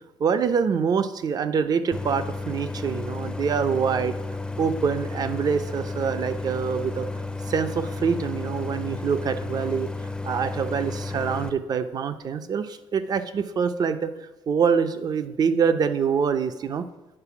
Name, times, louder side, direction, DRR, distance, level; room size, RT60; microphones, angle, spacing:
voice 1, 0.2-4.2 4.6-7.1 7.5-9.9 10.2-14.1 14.5-16.8, right 6 dB, 45° right, 10 dB, 0.5 m, -25 dB
Idling, 1.9-11.5, left 3 dB, 10° left, 0.5 m, -32 dB
8.8 x 4.4 x 5.8 m, 1.0 s
cardioid pair, 125°, 9 cm